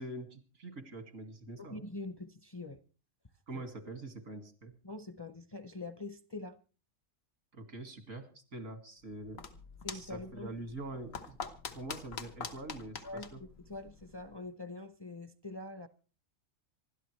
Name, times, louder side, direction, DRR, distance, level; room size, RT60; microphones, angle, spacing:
voice 1, 0.0-1.8 3.5-4.8 7.5-9.5 9.9-11.4 11.7-13.4, right 2 dB, 80° right, 2.4 m, -44 dB
voice 2, 1.7-2.8 3.5-3.6 4.8-6.6 9.8-10.5 13.0-15.9, left 2 dB, 25° left, 0.6 m, -44 dB
sound 1, 9.0-14.4, left 5 dB, 85° left, 1.6 m, -46 dB
26.5 x 12.5 x 3.2 m
omnidirectional pair, 1.3 m